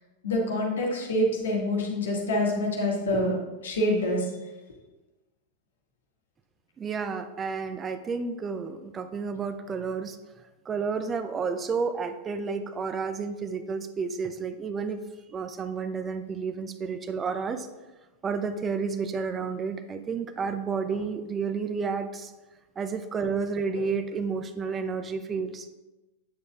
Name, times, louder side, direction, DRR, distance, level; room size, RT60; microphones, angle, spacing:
voice 1, 0.2-4.3, left 1 dB, 65° left, -1 dB, 1.7 m, -26 dB
voice 2, 6.8-10.2 10.7-15.0 15.3-17.7 18.2-22.3 22.8-25.7, right 5 dB, 20° right, 8 dB, 0.4 m, -31 dB
8.6 x 7.0 x 2.4 m, 1.1 s
figure-of-eight pair, 90°, 0 cm